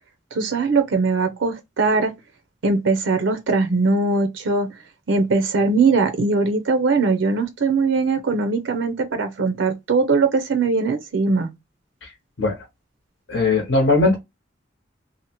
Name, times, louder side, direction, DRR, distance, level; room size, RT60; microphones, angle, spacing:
voice 1, 0.3-2.1 2.6-4.7 5.1-11.5, right 4 dB, 85° right, 0.5 m, -20 dB
voice 2, 13.3-14.2, left 3 dB, 75° left, 0.8 m, -19 dB
2.7 x 2.0 x 2.8 m
head